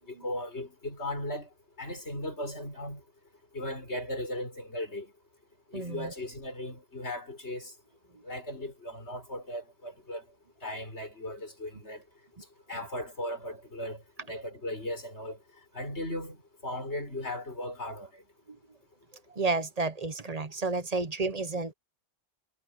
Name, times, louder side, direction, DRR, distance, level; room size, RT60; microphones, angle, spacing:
voice 1, 0.1-1.5 1.8-3.0 3.5-5.1 5.7-7.7 8.2-10.2 10.6-12.0 12.7-14.0 14.3-15.4 15.7-16.4 16.6-18.2, left 1 dB, 75° left, 6.6 m, -37 dB
voice 2, 5.7-6.1 19.3-21.7, right 3 dB, 35° right, 0.9 m, -31 dB
omnidirectional pair, 1.2 m